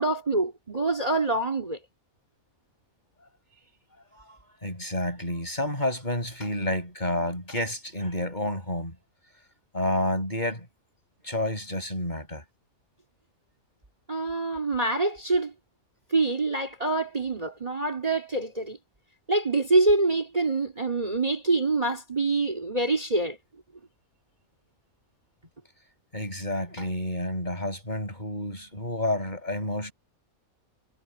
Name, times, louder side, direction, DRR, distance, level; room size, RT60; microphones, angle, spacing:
voice 1, 0.0-1.8 14.1-15.5 16.1-18.8 19.3-23.4, right 2 dB, 25° right, 2.9 m, -25 dB
voice 2, 4.2-9.0 9.7-10.7 11.2-12.4 26.1-29.9, left 1 dB, 30° left, 8.3 m, -30 dB
omnidirectional pair, 1.5 m